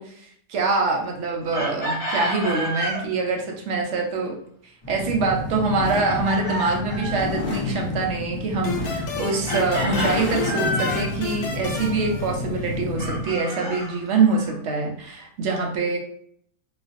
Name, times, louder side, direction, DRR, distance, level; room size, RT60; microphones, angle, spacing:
voice 1, 0.0-4.4 4.9-16.0, right 4 dB, 65° right, 1 dB, 0.8 m, -24 dB
Chicken rooster, 1.5-3.0 6.0-7.4 9.5-11.1 13.0-14.5, equal, 45° left, 0.7 m, -30 dB
sound 1, 4.8-13.4, left 2 dB, 30° left, 1.0 m, -30 dB
sound 2, 8.6-13.0, left 5 dB, 80° left, 1.0 m, -33 dB
2.4 x 2.0 x 2.5 m, 0.63 s
omnidirectional pair, 1.6 m